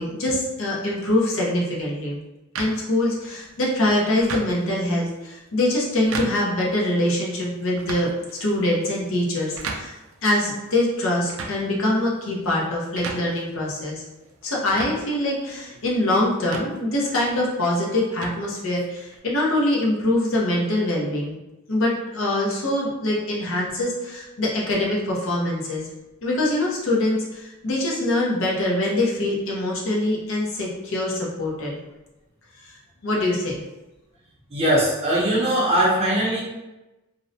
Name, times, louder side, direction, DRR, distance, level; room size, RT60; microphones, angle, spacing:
voice 1, 0.0-2.2 2.6-8.1 8.4-9.9 10.2-14.0 14.4-21.4 21.7-25.8 26.2-31.8 32.6-32.7 33.0-33.6, left 1 dB, 70° left, -4 dB, 0.7 m, -24 dB
sound 1, 2.5-19.2, right 4 dB, 80° right, 0.4 m, -39 dB
voice 2, 34.5-36.4, right 1 dB, 30° right, -6 dB, 0.6 m, -20 dB
2.6 x 2.1 x 2.6 m, 1.0 s
head